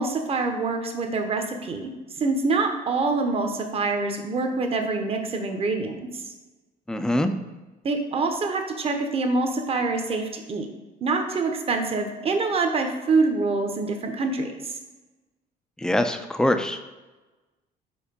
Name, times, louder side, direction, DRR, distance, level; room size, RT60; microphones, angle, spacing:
voice 1, 0.0-1.9 2.2-6.1 7.8-10.7 11.0-14.7, right 3 dB, 35° right, 5 dB, 0.9 m, -25 dB
voice 2, 6.9-7.3 15.8-16.8, left 1 dB, 5° left, 8 dB, 0.4 m, -23 dB
4.9 x 4.4 x 5.2 m, 1.2 s
cardioid pair, 110°, 17 cm